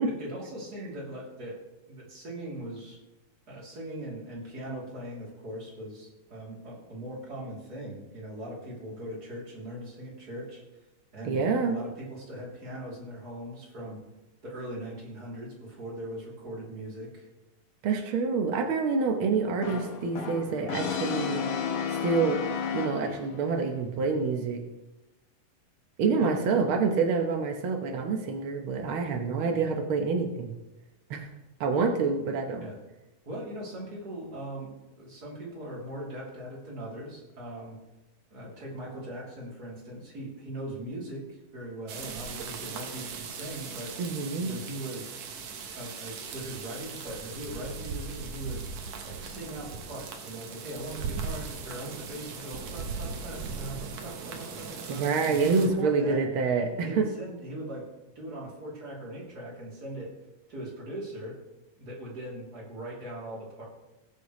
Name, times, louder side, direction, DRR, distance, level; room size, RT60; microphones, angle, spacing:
voice 1, 0.0-1.6 1.9-3.0 3.5-10.6 11.1-14.0 14.4-17.3 26.1-26.4 32.6-32.8 33.2-37.8 38.3-44.0 44.4-45.1 45.7-48.6 49.0-56.2 56.8-60.1 60.5-61.4 61.8-63.7, right 1 dB, 30° right, -4 dB, 3.3 m, -40 dB
voice 2, 11.2-11.7 17.8-21.4 21.9-22.4 22.7-24.6 26.0-30.5 31.1-31.3 31.6-32.7 44.0-44.5 54.9-57.0, right 4 dB, 85° right, 3 dB, 1.1 m, -27 dB
Brass instrument, 19.6-23.4, left 6 dB, 85° left, 3.0 m, -32 dB
sound 1, 41.9-55.7, right 5 dB, 60° right, 2.0 m, -39 dB
19.5 x 7.8 x 3.1 m, 1.0 s
omnidirectional pair, 3.9 m